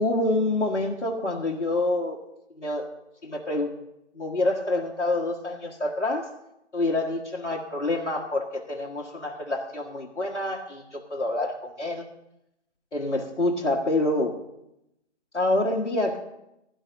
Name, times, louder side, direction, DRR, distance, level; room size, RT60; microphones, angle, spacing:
voice 1, 0.0-2.2 2.6-2.9 3.2-3.7 4.1-6.3 6.7-12.0 12.9-14.4 15.3-16.2, left 2 dB, 75° left, -2 dB, 1.7 m, -27 dB
17.0 x 11.5 x 2.7 m, 0.85 s
figure-of-eight pair, 155°, 36 cm